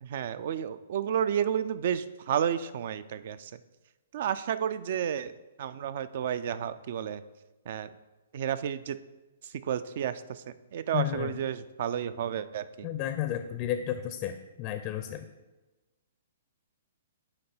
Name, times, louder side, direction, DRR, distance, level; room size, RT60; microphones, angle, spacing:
voice 1, 0.0-3.5 4.1-5.3 5.6-7.2 7.7-7.9 8.3-9.0 9.6-10.4 10.7-12.9, right 9 dB, 50° right, 14 dB, 0.4 m, -31 dB
voice 2, 10.9-11.4 12.8-15.2, left 11 dB, 35° left, 9 dB, 0.4 m, -32 dB
9.1 x 3.3 x 4.4 m, 1.1 s
figure-of-eight pair, 120°, 0 cm